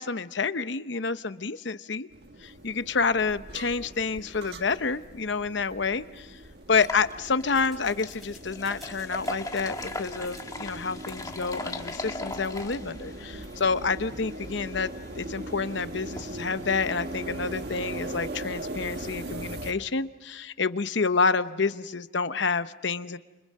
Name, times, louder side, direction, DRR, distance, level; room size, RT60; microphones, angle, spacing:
voice 1, 0.0-2.1 2.4-6.3 6.7-23.2, left 4 dB, 65° left, 12 dB, 0.9 m, -28 dB
sound 1, 2.1-19.7, right 1 dB, 55° right, 1.8 m, -40 dB
sound 2, 5.4-5.5 5.9-6.0 6.6-19.4, left 2 dB, 20° left, 1.6 m, -41 dB
sound 3, 6.8-12.1, left 2 dB, ahead, 7.5 m, -56 dB
29.5 x 29.5 x 5.5 m, 1.1 s
head